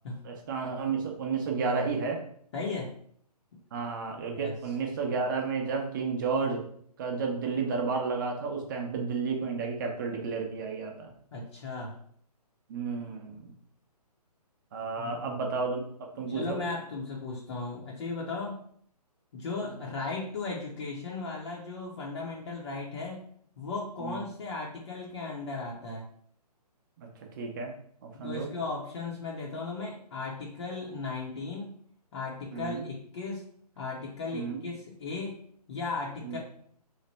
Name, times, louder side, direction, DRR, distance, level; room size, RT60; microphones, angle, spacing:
voice 1, 0.2-2.2 3.7-6.6 7.0-11.1 12.7-13.5 14.7-15.8 16.1-16.6 24.0-24.2 27.0-27.1 27.4-27.7 28.0-28.5 32.5-32.9 34.3-34.6 36.2-36.4, right 4 dB, 30° right, 2 dB, 0.7 m, -32 dB
voice 2, 2.5-2.9 3.5-3.6 4.3-4.6 11.3-12.0 15.0-15.4 16.1-18.6 19.3-23.2 23.6-26.1 28.2-31.8 32.1-33.4 33.8-35.4 35.7-36.4, left 3 dB, 45° left, -3 dB, 0.7 m, -36 dB
3.2 x 2.1 x 4.1 m, 0.62 s
figure-of-eight pair, 140°, 21 cm